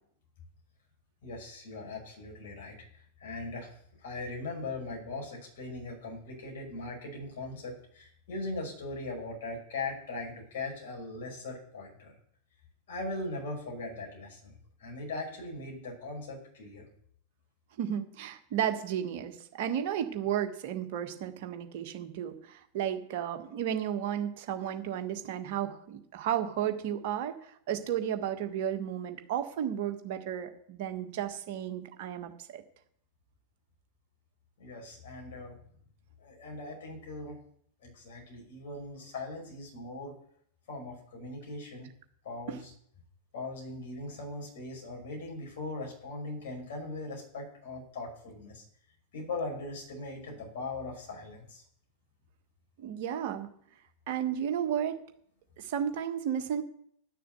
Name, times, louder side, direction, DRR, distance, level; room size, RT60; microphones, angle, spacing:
voice 1, 1.2-2.8 3.2-12.1 12.9-16.9 34.6-35.6 36.2-37.4 37.8-40.1 40.7-41.9 42.2-42.7 43.3-48.6 49.1-51.6, left 2 dB, 55° left, -1 dB, 5.7 m, -40 dB
voice 2, 17.8-32.6 42.5-42.6 52.8-53.5 54.1-55.0 55.6-56.6, right 9 dB, 50° right, 6 dB, 1.5 m, -33 dB
11.0 x 6.8 x 8.0 m, 0.67 s
figure-of-eight pair, 90°, 0 cm